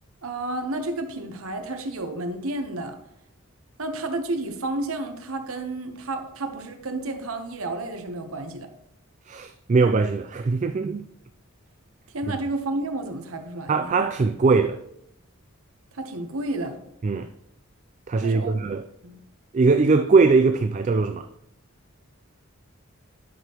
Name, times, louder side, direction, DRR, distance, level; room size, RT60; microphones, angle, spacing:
voice 1, 0.2-3.0 3.8-8.7 12.1-13.9 15.9-16.8 18.2-18.6 19.0-19.2, right 2 dB, 85° right, 1.0 m, -31 dB
voice 2, 9.3-11.0 12.3-12.4 13.7-14.8 17.0-17.3 18.1-18.9 19.5-21.3, right 4 dB, 35° right, 0.3 m, -21 dB
11.0 x 6.5 x 3.0 m
head